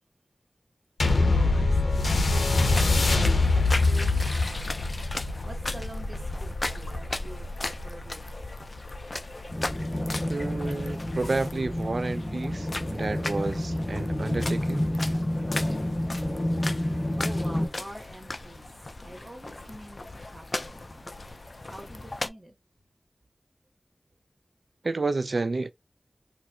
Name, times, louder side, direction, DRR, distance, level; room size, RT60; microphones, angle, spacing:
sound 1, 1.0-9.8 10.5-10.6, left 3 dB, 90° left, 0.6 m, -25 dB
voice 1, 1.3-2.4 2.9-4.8 5.4-6.5 6.7-8.2 17.2-18.6 19.0-20.0 20.3-21.1 21.7-22.5, right 1 dB, 35° right, 1.2 m, -45 dB
sound 2, 2.7-22.3, left 2 dB, 50° left, 0.4 m, -37 dB
sound 3, 9.5-17.7, left 1 dB, 25° left, 1.3 m, -29 dB
voice 2, 10.3-14.9 24.8-25.7, right 3 dB, 70° right, 0.4 m, -30 dB
4.1 x 2.5 x 2.3 m
wide cardioid pair, 60°, 0 cm